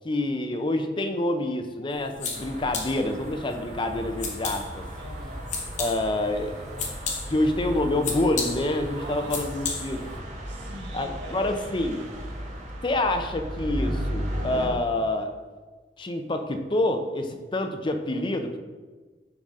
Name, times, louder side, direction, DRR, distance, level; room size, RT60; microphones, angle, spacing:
voice 1, 0.0-4.8 5.8-6.6 7.3-10.1 10.9-12.0 12.8-15.3 16.0-18.6, left 1 dB, 30° left, 6 dB, 0.5 m, -27 dB
sound 1, 1.9-10.2, left 5 dB, 45° left, 0.9 m, -36 dB
sound 2, 2.3-14.7, equal, 45° right, 1.2 m, -36 dB
voice 2, 5.0-5.5 8.9-9.7 10.5-11.8, right 1 dB, 90° right, 0 dB, 1.4 m, -43 dB
10.0 x 3.8 x 3.7 m, 1.3 s
head